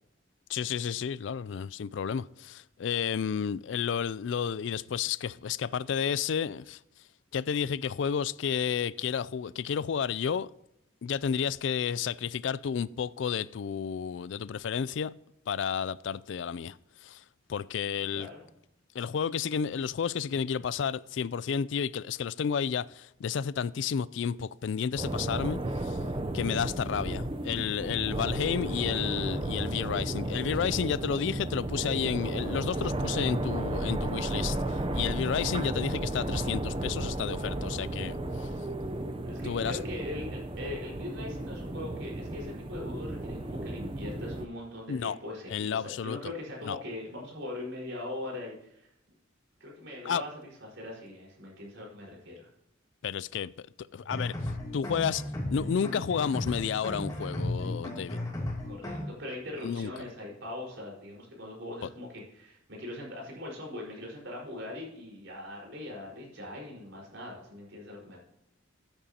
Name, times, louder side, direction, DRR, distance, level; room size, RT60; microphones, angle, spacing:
voice 1, 0.5-6.8 7.3-10.5 11.0-15.1 15.5-17.2 17.5-18.3 18.9-26.0 26.3-38.5 39.4-39.8 44.9-45.2 45.5-46.3 46.7-46.8 50.0-50.2 53.0-53.7 53.9-54.3 54.7-55.2 55.5-58.2 59.6-59.9 61.8-61.9, left 7 dB, 70° left, 0.4 m, -31 dB
voice 2, 18.1-18.5 39.2-48.9 49.6-52.5 58.3-68.2, left 1 dB, 70° right, 4.7 m, -41 dB
sound 1, 25.0-44.5, right 1 dB, 25° right, 0.6 m, -34 dB
sound 2, 54.0-59.0, left 1 dB, 20° left, 2.7 m, -35 dB
13.5 x 9.1 x 2.9 m
head